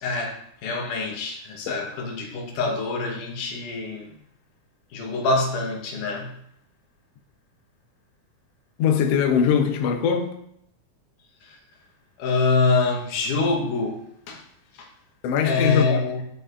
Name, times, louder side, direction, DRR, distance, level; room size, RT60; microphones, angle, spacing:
voice 1, 0.0-4.1 4.9-6.3 11.4-11.6 12.2-14.0 14.3-14.4 14.8-14.9 15.4-16.2, left 3 dB, 85° left, 2.7 m, -25 dB
voice 2, 8.8-10.4 15.2-16.0, left 7 dB, 70° left, 1.6 m, -21 dB
11.0 x 5.4 x 2.5 m
omnidirectional pair, 3.5 m